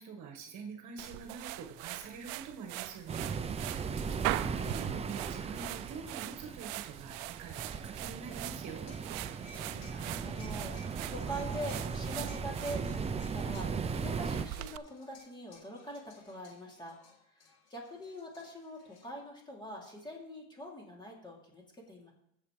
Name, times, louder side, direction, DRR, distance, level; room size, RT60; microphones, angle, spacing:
voice 1, 0.0-4.0 4.3-8.9, right 5 dB, 50° right, 4 dB, 1.5 m, -46 dB
sound 1, 1.0-14.8, right 18 dB, 80° right, 0.6 m, -42 dB
sound 2, 3.1-14.4, right 5 dB, 15° right, 0.5 m, -38 dB
sound 3, 8.7-13.7 14.5-19.1, left 2 dB, 75° left, 3.0 m, -58 dB
voice 2, 9.5-17.0 17.3-22.1, equal, 10° left, -2 dB, 3.0 m, -44 dB
15.5 x 7.2 x 3.3 m, 0.76 s
cardioid pair, 135°, 38 cm